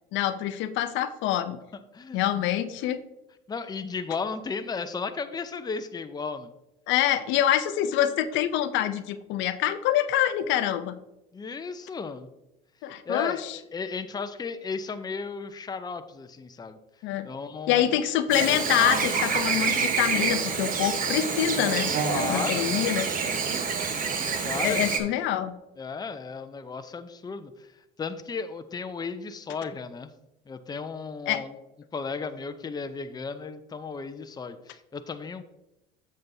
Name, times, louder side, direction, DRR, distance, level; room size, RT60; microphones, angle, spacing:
voice 1, 0.1-1.6 2.1-3.0 6.9-10.9 12.8-13.6 17.0-17.3 17.7-21.9 22.3-23.1 24.6-25.5 31.3-31.4, left 11 dB, 65° left, 11 dB, 0.6 m, -25 dB
voice 2, 1.9-2.5 3.5-6.5 11.3-12.3 13.1-16.8 17.2-18.0 22.0-22.8 24.4-24.9 25.8-27.7 28.0-30.1 30.5-31.5 31.9-35.4, left 5 dB, 20° left, 9 dB, 0.6 m, -34 dB
Chirp tweet / Buzz, 18.3-25.0, right 5 dB, 40° right, 1.2 m, -27 dB
7.6 x 7.4 x 2.7 m, 0.91 s
supercardioid pair, 85°, 21 cm